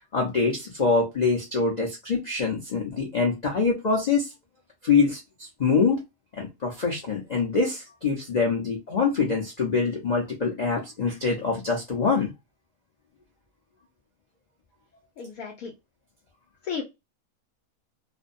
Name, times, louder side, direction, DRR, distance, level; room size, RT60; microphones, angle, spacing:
voice 1, 0.1-4.3 4.8-5.2 5.6-6.0 6.3-12.3, left 4 dB, 50° left, 0.5 m, -24 dB
voice 2, 15.2-15.7 16.6-16.8, left 6 dB, 70° left, 1.1 m, -33 dB
2.5 x 2.2 x 2.5 m
omnidirectional pair, 1.6 m